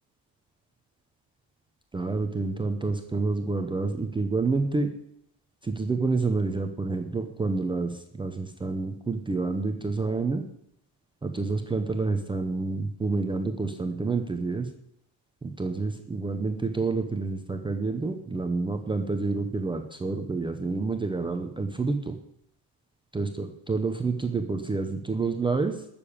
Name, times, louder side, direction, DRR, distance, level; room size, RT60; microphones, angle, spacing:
voice 1, 1.9-4.9 5.6-10.5 11.2-14.7 15.4-22.2 23.1-25.8, right 3 dB, 10° right, 5 dB, 0.6 m, -28 dB
12.0 x 6.9 x 8.7 m, 0.74 s
cardioid pair, 165°, 46 cm